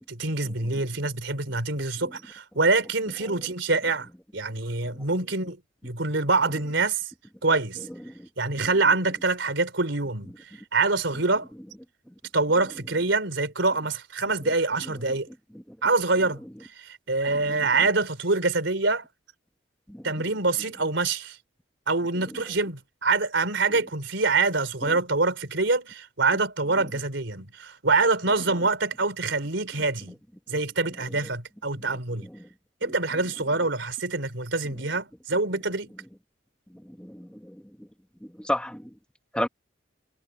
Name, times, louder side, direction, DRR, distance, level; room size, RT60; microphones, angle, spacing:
voice 1, 0.1-7.0 7.4-7.9 8.4-10.3 10.7-11.5 12.3-15.3 15.8-16.4 16.8-19.0 20.0-21.4 21.9-30.1 30.5-32.3 32.8-35.9, right 3 dB, 85° right, 3.5 m, -25 dB
voice 2, 36.9-37.6 38.2-38.9 39.3-39.5, left 1 dB, 5° left, 2.0 m, -32 dB
head